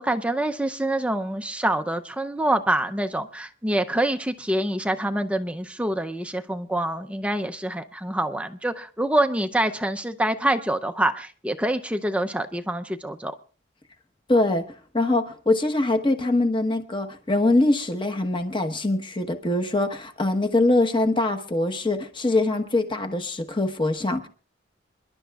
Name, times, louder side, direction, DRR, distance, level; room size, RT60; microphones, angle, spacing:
voice 1, 0.0-13.3, right 1 dB, 5° right, 0.5 m, -26 dB
voice 2, 14.3-14.6 14.9-24.3, left 2 dB, 25° left, 1.0 m, -23 dB
27.5 x 11.5 x 2.3 m
head